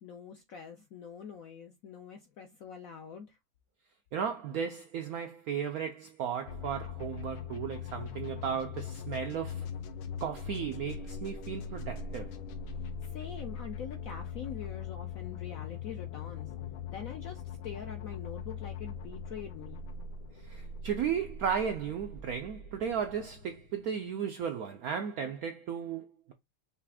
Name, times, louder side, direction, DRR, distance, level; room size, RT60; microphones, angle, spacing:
voice 1, 0.0-3.4 13.0-16.5 16.9-19.8, left 7 dB, 70° left, 0.8 m, -44 dB
voice 2, 4.1-9.7 10.2-12.4 20.3-26.3, right 7 dB, 75° right, 0.8 m, -35 dB
sound 1, 6.5-24.2, left 6 dB, 85° left, 1.6 m, -41 dB
5.7 x 2.4 x 3.5 m
omnidirectional pair, 2.1 m